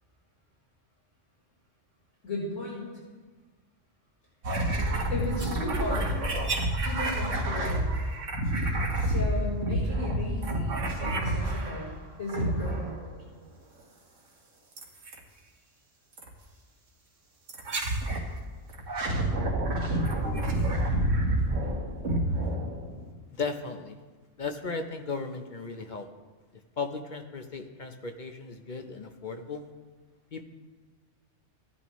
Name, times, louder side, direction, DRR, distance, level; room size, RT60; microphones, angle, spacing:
voice 1, 2.2-2.9 5.1-6.1 6.8-7.8 9.0-11.9 12.2-12.9, left 1 dB, 90° left, -6 dB, 4.2 m, -35 dB
sound 1, 4.4-11.9 12.3-13.1 14.8-15.2 16.2-16.3 17.5-18.3 18.7-23.1, right 1 dB, 80° right, 1.7 m, -28 dB
voice 2, 23.3-24.0 24.4-26.1 26.8-29.7 30.3-30.4, left 4 dB, 45° left, 6 dB, 0.8 m, -36 dB
15.5 x 11.0 x 3.1 m, 1.3 s
omnidirectional pair, 1.3 m